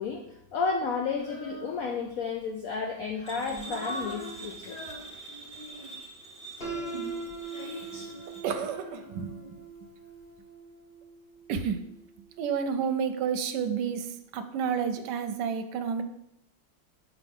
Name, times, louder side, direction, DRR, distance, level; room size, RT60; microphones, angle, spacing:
voice 1, 0.0-4.8, left 5 dB, 80° left, 2 dB, 0.7 m, -32 dB
Female singing, 1.2-2.2 2.8-6.1 6.7-9.8, equal, 60° left, 2.6 m, -42 dB
sound 1, 3.3-8.4, right 3 dB, 5° left, 1.0 m, -45 dB
Piano, 6.6-12.5, right 4 dB, 30° left, 1.7 m, -41 dB
voice 2, 8.4-9.4 11.5-11.8 12.4-16.0, right 7 dB, 70° right, 8 dB, 1.1 m, -30 dB
7.0 x 4.5 x 3.5 m, 0.79 s
omnidirectional pair, 2.1 m